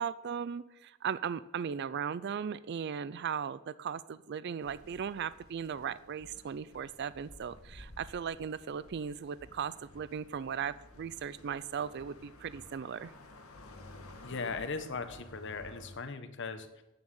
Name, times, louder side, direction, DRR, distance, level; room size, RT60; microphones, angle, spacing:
voice 1, 0.0-13.1, right 7 dB, 50° right, 17 dB, 0.4 m, -37 dB
sound 1, 4.6-16.0, left 1 dB, 85° left, 1.7 m, -54 dB
voice 2, 14.2-16.8, left 4 dB, 55° left, 9 dB, 1.2 m, -38 dB
8.9 x 7.3 x 8.9 m, 0.93 s
head